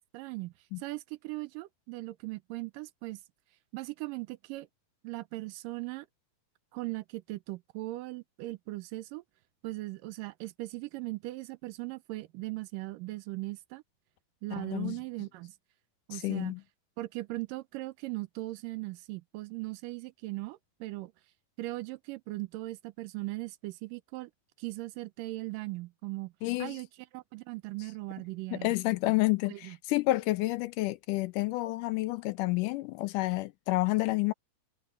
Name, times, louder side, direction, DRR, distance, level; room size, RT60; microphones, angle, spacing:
voice 1, 0.1-3.2 3.7-4.7 5.0-6.1 6.7-9.2 9.6-13.8 14.4-15.5 16.1-16.5 17.0-21.1 21.6-24.3 24.6-26.3 26.6-26.9 27.1-28.7 29.5-29.8, right 20 dB, 80° right, 2.3 m, -39 dB
voice 2, 14.6-15.0 16.1-16.6 26.4-26.8 28.5-34.3, left 19 dB, 80° left, 2.0 m, -29 dB
omnidirectional pair, 3.9 m